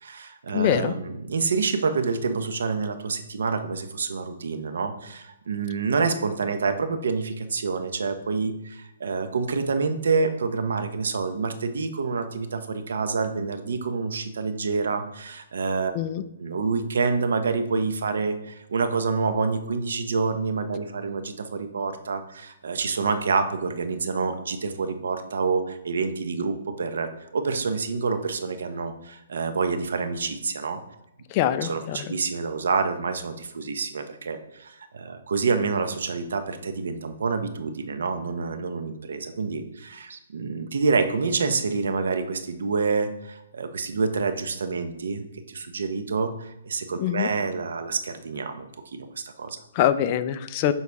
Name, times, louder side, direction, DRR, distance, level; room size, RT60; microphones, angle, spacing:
voice 1, 0.0-15.9 16.4-30.8 31.7-49.6, right 4 dB, 75° right, 8 dB, 0.9 m, -27 dB
voice 2, 0.5-0.9 15.9-16.2 31.3-32.1 47.0-47.3 49.7-50.7, left 11 dB, 25° left, 10 dB, 0.4 m, -24 dB
7.1 x 4.1 x 4.7 m, 0.89 s
hypercardioid pair, 165°, 0 cm